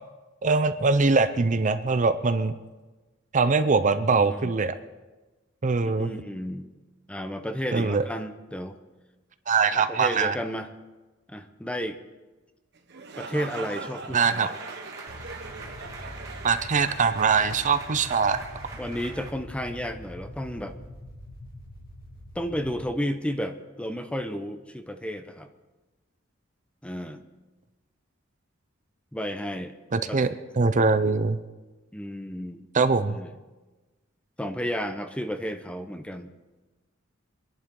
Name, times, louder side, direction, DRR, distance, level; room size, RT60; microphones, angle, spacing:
voice 1, 0.4-2.6 3.3-4.7 5.6-6.1 7.7-8.0 9.5-10.4 14.1-14.5 16.4-18.4 29.9-30.3 30.6-31.4 32.7-33.2, right 4 dB, 40° right, 11 dB, 0.6 m, -22 dB
voice 2, 4.2-4.6 5.8-6.7 7.1-8.8 9.7-10.7 11.3-12.0 13.2-14.6 18.8-20.8 22.3-25.5 26.8-27.2 29.1-29.7 30.1-30.2 31.9-32.7 33.0-33.3 34.4-36.4, equal, 5° left, 8 dB, 0.8 m, -32 dB
sound 1, 12.7-18.5, right 4 dB, 60° right, 1.2 m, -42 dB
sound 2, 14.2-19.3, right 3 dB, 15° right, 2.2 m, -43 dB
sound 3, 15.1-22.8, left 1 dB, 50° left, 2.1 m, -44 dB
24.5 x 11.0 x 3.8 m, 1.2 s
head